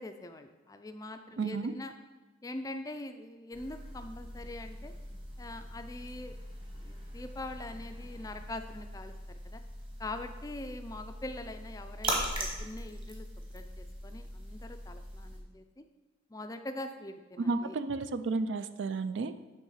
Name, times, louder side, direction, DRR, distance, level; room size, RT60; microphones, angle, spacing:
voice 1, 0.0-1.9 2.4-4.9 5.4-6.3 6.8-9.6 10.0-15.8 16.3-17.8, left 2 dB, 20° left, 7 dB, 0.4 m, -43 dB
voice 2, 1.4-1.7 17.4-19.3, right 3 dB, 65° right, 11 dB, 0.4 m, -32 dB
sound 1, 3.5-15.4, right 1 dB, 25° right, 1.2 m, -41 dB
9.1 x 3.6 x 5.6 m, 1.2 s
head